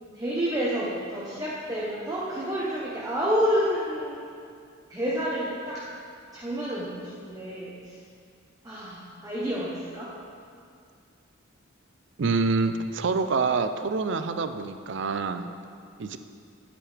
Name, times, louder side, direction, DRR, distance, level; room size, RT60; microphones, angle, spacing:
voice 1, 0.1-4.2 4.9-5.8 6.3-7.9 8.6-10.1, equal, 15° right, -6 dB, 0.8 m, -29 dB
voice 2, 12.2-15.5 16.0-16.2, right 4 dB, 60° right, 9 dB, 0.4 m, -26 dB
10.0 x 8.4 x 3.4 m, 2.4 s
head